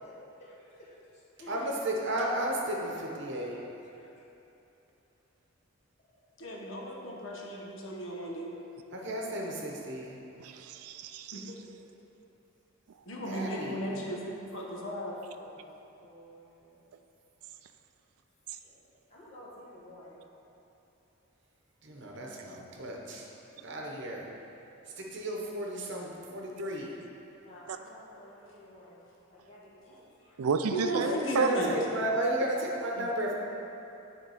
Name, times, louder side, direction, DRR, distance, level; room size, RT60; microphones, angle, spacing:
voice 1, 0.4-1.8 2.9-3.4 3.9-4.2 11.6-11.8 13.7-15.6 16.0-16.8 18.6-18.8 19.1-20.2 27.4-29.0 29.3-30.4, equal, 30° left, -8 dB, 1.5 m, -53 dB
voice 2, 1.5-3.6 8.9-10.2 13.3-14.0 21.8-23.2 23.6-24.3 25.0-26.9 31.0-33.3, right 1 dB, 55° right, -1 dB, 0.9 m, -33 dB
voice 3, 6.4-8.5 11.3-11.6 13.1-15.2 30.7-31.8, equal, 60° left, -2 dB, 0.9 m, -35 dB
voice 4, 10.4-11.5 27.7-27.8 30.4-31.7 33.0-33.1, right 5 dB, 85° right, 8 dB, 0.4 m, -31 dB
9.3 x 3.6 x 4.9 m, 3.0 s
head